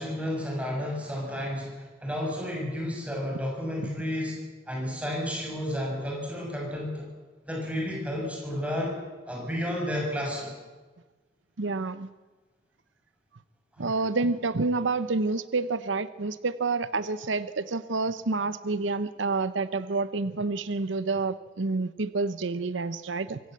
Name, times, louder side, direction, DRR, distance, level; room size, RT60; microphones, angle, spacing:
voice 1, 0.0-4.3 4.7-7.1 7.5-9.0 9.3-10.6, equal, 5° right, -1 dB, 7.0 m, -31 dB
voice 2, 11.6-12.1 13.8-23.4, right 3 dB, 90° right, 13 dB, 0.8 m, -28 dB
24.5 x 16.0 x 8.0 m, 1.3 s
head